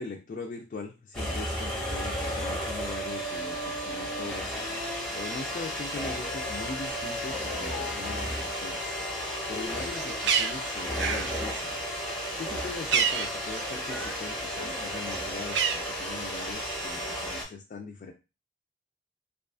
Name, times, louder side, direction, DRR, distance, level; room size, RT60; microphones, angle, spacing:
voice 1, 0.0-4.6 5.1-9.0 9.5-11.7 12.4-18.1, left 4 dB, 50° left, 2 dB, 0.3 m, -40 dB
sound 1, 1.1-17.4, equal, 5° left, 0.6 m, -33 dB
Dog, 5.9-11.5, left 2 dB, 85° left, 0.6 m, -42 dB
Bird, 9.7-14.3 14.6-16.5, right 7 dB, 70° right, 0.3 m, -31 dB
2.3 x 2.3 x 2.4 m, 0.29 s
head